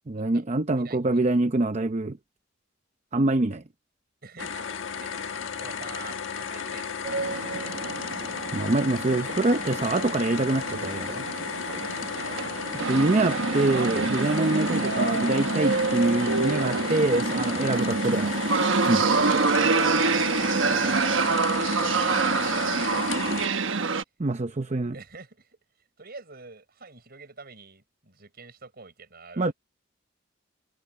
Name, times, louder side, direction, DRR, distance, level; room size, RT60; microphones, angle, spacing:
voice 1, 0.1-2.2 3.1-3.6 8.5-11.2 12.9-18.3 18.9-19.2 24.2-24.9 29.4-29.5, right 2 dB, 35° right, 0.7 m, -25 dB
voice 2, 0.7-1.2 4.2-7.9 12.1-12.9 16.5-17.1 17.3-17.9 19.2-23.9 24.9-25.6 26.0-29.5, right 4 dB, 55° right, 6.0 m, -46 dB
sound 1, 4.4-23.5, left 7 dB, 85° left, 1.3 m, -34 dB
sound 2, 7.0-24.0, right 4 dB, 85° right, 1.2 m, -26 dB
head